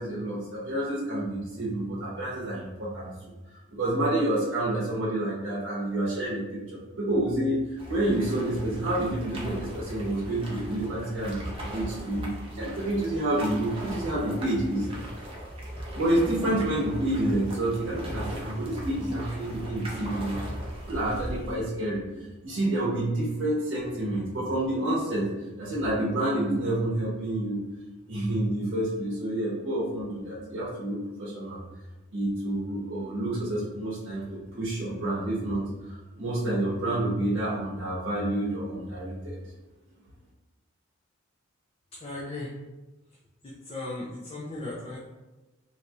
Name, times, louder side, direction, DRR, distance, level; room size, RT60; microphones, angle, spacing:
voice 1, 0.0-3.1 3.7-7.6 7.9-14.9 15.9-22.0 22.4-25.3 25.6-27.6 28.1-31.6 32.1-39.4, right 1 dB, 65° right, -6 dB, 0.8 m, -29 dB
sound 1, 7.8-21.5, equal, 25° right, 0.6 m, -38 dB
voice 2, 42.0-42.5 43.4-45.0, left 2 dB, 30° left, -5 dB, 0.4 m, -36 dB
3.3 x 2.6 x 2.8 m, 1.1 s
head